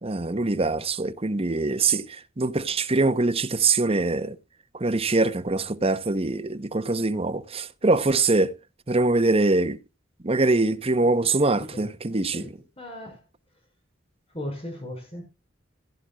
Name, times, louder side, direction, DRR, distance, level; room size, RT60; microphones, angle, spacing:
voice 1, 0.0-4.4 4.7-8.6 8.9-9.8 10.2-12.4, right 3 dB, 30° right, 0.9 m, -23 dB
voice 2, 12.3-13.2 14.3-15.2, left 1 dB, 30° left, 5.1 m, -37 dB
16.0 x 11.0 x 2.3 m
head